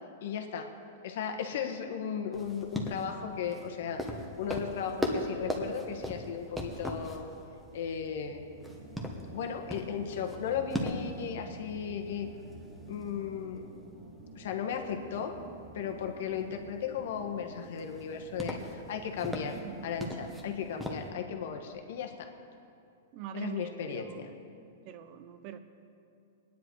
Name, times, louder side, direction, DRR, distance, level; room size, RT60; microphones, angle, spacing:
voice 1, 0.2-0.7 1.0-4.0 4.4-7.3 7.7-8.5 9.3-12.3 12.9-13.7 14.3-15.3 15.7-19.6 19.8-22.3 23.3-24.3, left 7 dB, 65° left, 5 dB, 1.5 m, -36 dB
sound 1, 2.3-21.1, equal, ahead, 1.3 m, -40 dB
sound 2, 8.5-21.5, right 3 dB, 85° right, 2.3 m, -51 dB
voice 2, 23.1-24.3 24.9-25.6, right 10 dB, 40° right, 10 dB, 0.9 m, -43 dB
20.5 x 10.0 x 4.8 m, 2.5 s
hypercardioid pair, 145°, 0 cm